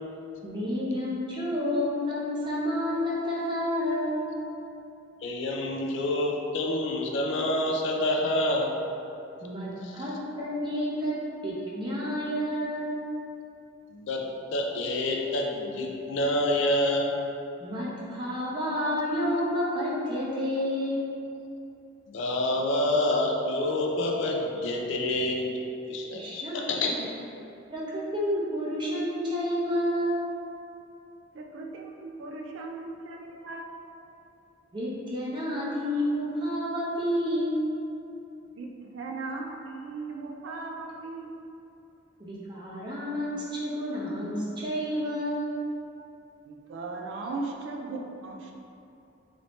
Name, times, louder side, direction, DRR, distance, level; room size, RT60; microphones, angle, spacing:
voice 1, 0.4-4.3 9.4-11.1 11.4-13.0 17.6-21.1 26.1-26.5 26.9-27.0 27.7-30.3 34.7-37.7 42.2-45.6, equal, 25° right, -7 dB, 0.7 m, -30 dB
voice 2, 5.2-8.7 9.8-10.0 13.9-17.1 22.1-25.6 25.9-26.9, left 1 dB, 65° left, 0 dB, 0.4 m, -27 dB
voice 3, 31.3-33.8 38.5-41.3 46.4-48.5, right 3 dB, 70° right, 1 dB, 0.4 m, -38 dB
3.2 x 2.7 x 3.1 m, 2.8 s
head